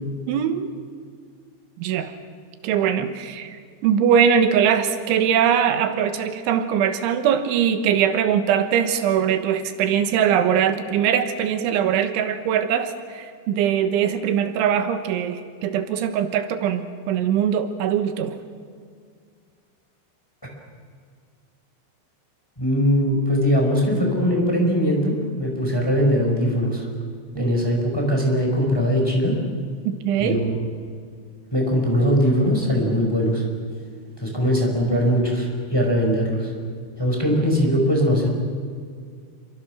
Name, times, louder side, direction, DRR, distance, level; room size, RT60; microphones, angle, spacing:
voice 1, 0.3-0.7 1.8-2.1 2.6-3.5 3.8-18.4 27.4-27.5 29.9-30.4, right 8 dB, 90° right, 9 dB, 3.7 m, -21 dB
voice 2, 22.6-26.9 27.3-29.4 30.2-30.5 31.5-33.5 34.2-36.5 37.0-38.3, equal, 5° left, 0 dB, 4.7 m, -21 dB
28.5 x 24.5 x 6.2 m, 2.1 s
omnidirectional pair, 5.3 m